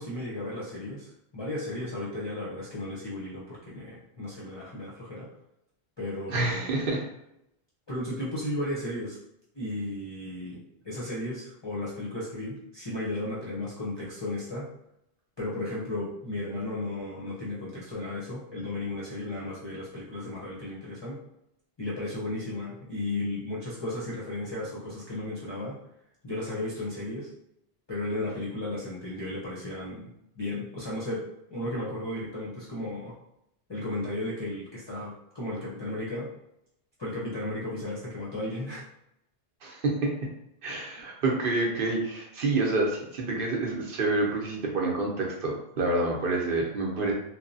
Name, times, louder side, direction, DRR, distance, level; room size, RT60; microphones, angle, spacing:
voice 1, 0.0-5.3 6.0-6.7 7.9-9.2 9.5-14.7 15.4-21.2 21.8-25.8 26.2-27.3 27.9-33.1 33.7-36.3 37.0-38.8, left 1 dB, 30° left, -7 dB, 0.6 m, -34 dB
voice 2, 6.3-7.0 39.6-40.1 40.6-47.1, right 2 dB, 65° right, 0 dB, 0.8 m, -28 dB
3.0 x 2.0 x 2.6 m, 0.80 s
omnidirectional pair, 1.0 m